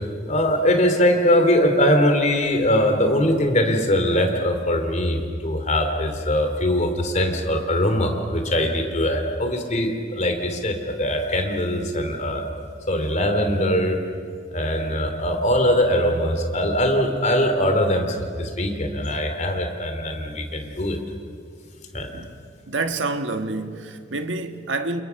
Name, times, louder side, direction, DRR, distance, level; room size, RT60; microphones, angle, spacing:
voice 1, 0.3-12.5 12.9-14.0 14.5-21.0 21.9-22.1, equal, 40° left, 3.0 m, -21 dB
voice 2, 22.7-25.0, right 3 dB, 75° right, 1.6 m, -28 dB
29.5 x 28.5 x 5.9 m
head